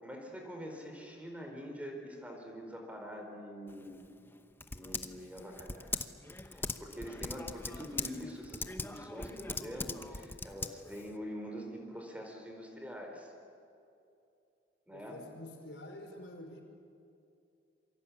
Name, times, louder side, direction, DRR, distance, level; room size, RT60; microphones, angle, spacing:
voice 1, 0.0-4.0 4.7-6.1 6.5-13.3 14.9-15.2, equal, 10° right, 2 dB, 4.5 m, -45 dB
Typing, 3.7-11.1, left 3 dB, 15° left, 0.9 m, -41 dB
voice 2, 14.9-16.6, left 1 dB, 75° left, 3 dB, 4.9 m, -48 dB
28.0 x 24.0 x 8.7 m, 2.6 s
head